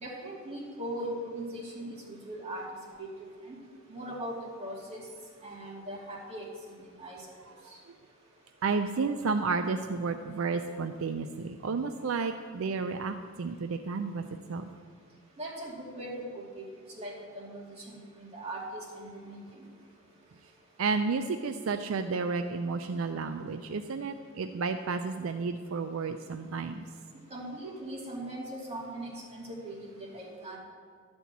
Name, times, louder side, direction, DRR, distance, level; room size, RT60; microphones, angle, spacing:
voice 1, 0.0-2.7 3.0-3.1 3.4-3.6 3.9-5.0 5.4-6.5 7.0-7.2 15.4-16.6 17.0-19.4 27.3-30.6, right 1 dB, 30° right, -3 dB, 2.5 m, -40 dB
voice 2, 8.6-14.2 14.5-14.7 20.8-26.8, right 4 dB, 75° right, 8 dB, 0.5 m, -31 dB
12.0 x 4.4 x 8.3 m, 2.1 s
head